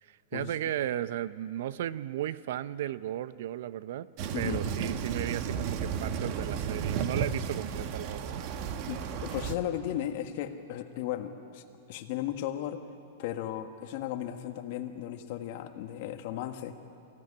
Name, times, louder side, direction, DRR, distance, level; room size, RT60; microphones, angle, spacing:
voice 1, 0.0-4.1 4.3-8.4, right 12 dB, 60° right, 17 dB, 0.6 m, -35 dB
sound 1, 4.2-9.5, right 7 dB, 35° right, 1.1 m, -33 dB
voice 2, 4.3-4.6 8.9-12.8 13.2-16.7, left 11 dB, 45° left, 7 dB, 1.5 m, -35 dB
22.5 x 16.0 x 9.9 m, 2.6 s
supercardioid pair, 160°, 0 cm